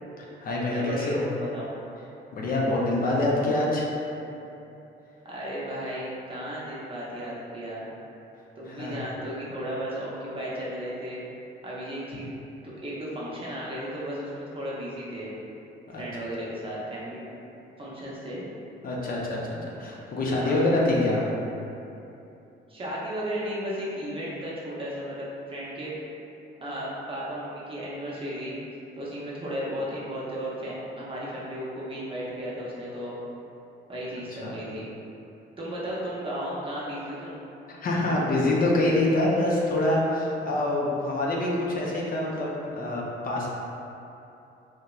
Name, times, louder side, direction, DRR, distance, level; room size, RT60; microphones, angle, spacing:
voice 1, 0.2-1.2 2.3-3.9 8.7-9.0 15.9-16.0 18.8-21.2 34.4-34.5 37.8-43.5, left 1 dB, 45° left, -4 dB, 0.4 m, -25 dB
voice 2, 0.7-1.7 5.2-7.8 8.6-11.2 11.6-12.3 12.6-15.3 16.0-17.2 17.8-18.4 20.4-20.7 22.7-26.0 26.6-28.6 29.0-33.2 33.9-34.9 35.6-37.4, equal, 25° right, -7 dB, 0.6 m, -34 dB
2.8 x 2.1 x 2.3 m, 2.8 s
cardioid pair, 90°, 20 cm